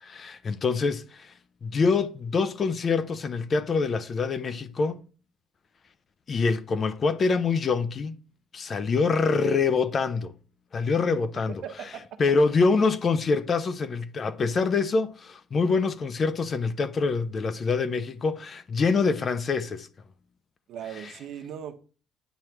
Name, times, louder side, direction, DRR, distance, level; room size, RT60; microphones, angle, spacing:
voice 1, 0.0-1.3 1.6-5.0 6.3-8.1 8.5-10.3 10.7-11.5 12.2-19.9 21.0-21.1, left 4 dB, 30° left, 0.4 m, -25 dB
voice 2, 11.6-12.0 20.7-21.7, right 9 dB, 55° right, 1.0 m, -38 dB
9.1 x 3.2 x 5.8 m
cardioid pair, 165°, 0 cm